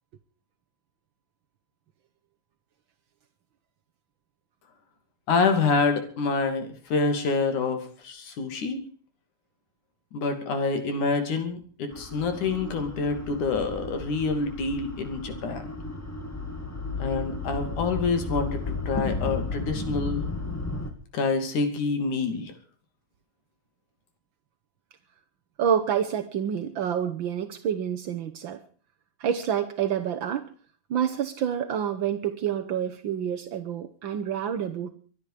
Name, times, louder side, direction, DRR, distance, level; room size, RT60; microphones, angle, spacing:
voice 1, 5.3-8.8 10.1-15.7 17.0-20.2 21.1-22.5, left 4 dB, 80° left, 4.2 m, -27 dB
sound 1, 11.9-20.9, left 3 dB, 5° left, 1.5 m, -34 dB
voice 2, 25.6-28.6 29.2-30.5 30.9-34.9, right 8 dB, 70° right, 1.2 m, -28 dB
24.0 x 10.0 x 5.0 m
omnidirectional pair, 3.4 m